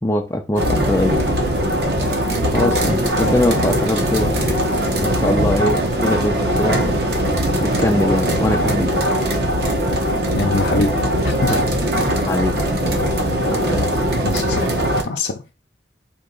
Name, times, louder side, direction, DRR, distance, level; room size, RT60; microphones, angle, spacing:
voice 1, 0.0-1.2 2.5-4.6 4.9-7.1 7.6-9.1 11.5-13.0 13.5-14.0, left 1 dB, 15° left, 0.5 m, -22 dB
sound 1, 0.6-15.0, equal, 60° right, 1.1 m, -20 dB
voice 2, 10.3-11.6 14.2-14.7 15.0-15.4, left 3 dB, 75° left, 0.6 m, -23 dB
4.6 x 2.9 x 3.8 m
head